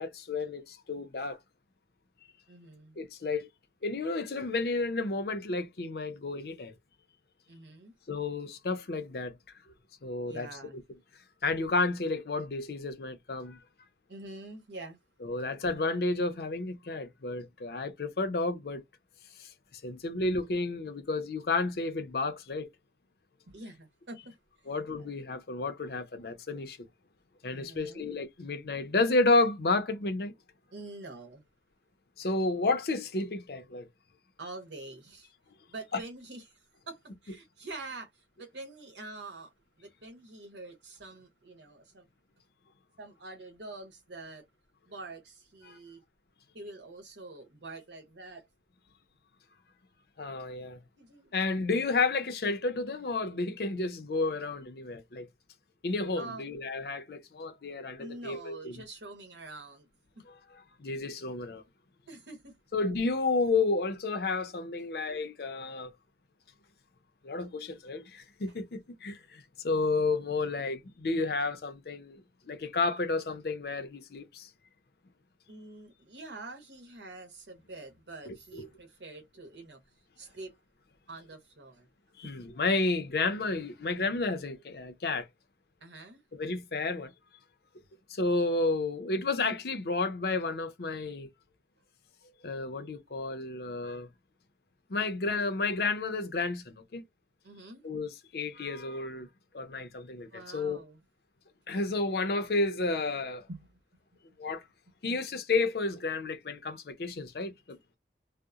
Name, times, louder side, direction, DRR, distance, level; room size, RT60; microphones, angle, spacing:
voice 1, 0.0-1.4 3.0-3.5 3.8-6.7 8.1-9.3 10.0-10.5 11.4-13.6 15.2-18.8 19.4-19.5 19.8-22.7 24.7-26.8 27.4-30.3 32.2-33.9 45.7-45.8 50.2-50.8 51.3-55.3 55.8-58.7 60.8-61.6 62.7-65.9 67.2-74.5 78.3-78.7 82.2-85.3 86.3-87.1 88.1-91.3 92.4-94.1 94.9-97.0 97.8-99.3 99.5-100.8 101.7-103.5 104.4-104.6 105.0-107.8, left 3 dB, 60° left, 0.5 m, -31 dB
voice 2, 2.5-3.0 7.5-7.9 10.3-10.8 14.1-15.0 23.5-24.4 24.6-24.7 27.5-28.1 30.7-31.4 34.4-35.3 35.7-42.1 43.0-44.4 44.9-46.0 46.5-48.5 51.0-51.4 56.2-56.5 58.0-59.9 60.2-60.3 62.1-62.5 75.5-80.5 81.1-81.9 85.8-86.2 97.4-97.8 100.3-101.0 103.5-103.8 104.9-105.0, right 2 dB, 85° right, 1.0 m, -46 dB
2.8 x 2.0 x 2.4 m
head